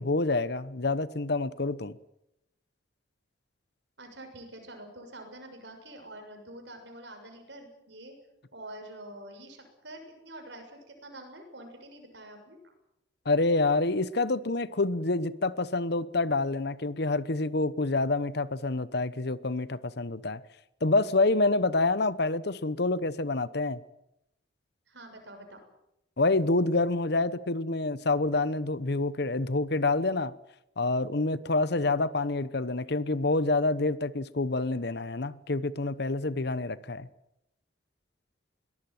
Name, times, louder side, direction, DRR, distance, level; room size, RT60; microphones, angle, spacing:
voice 1, 0.0-2.0 13.3-20.4 20.8-23.8 26.2-30.3 30.8-37.1, left 2 dB, 60° left, 1.0 m, -27 dB
voice 2, 4.0-8.2 8.5-12.7 24.9-25.6, right 1 dB, 65° right, 6.8 m, -46 dB
22.5 x 19.0 x 9.4 m
head